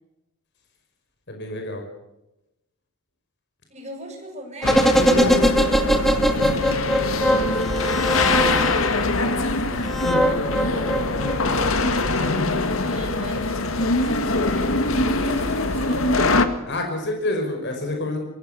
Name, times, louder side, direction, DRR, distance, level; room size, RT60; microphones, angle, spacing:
voice 1, 1.3-1.8 16.7-18.2, left 2 dB, 55° left, 3 dB, 5.4 m, -27 dB
voice 2, 3.7-6.7 7.0-16.2, right 1 dB, 35° right, 2 dB, 7.2 m, -41 dB
sound 1, 4.6-16.5, left 2 dB, 70° left, 1.9 m, -23 dB
sound 2, 4.6-9.0 9.9-11.7 12.0-12.1, equal, ahead, 2.0 m, -21 dB
25.0 x 22.5 x 7.0 m, 0.94 s
head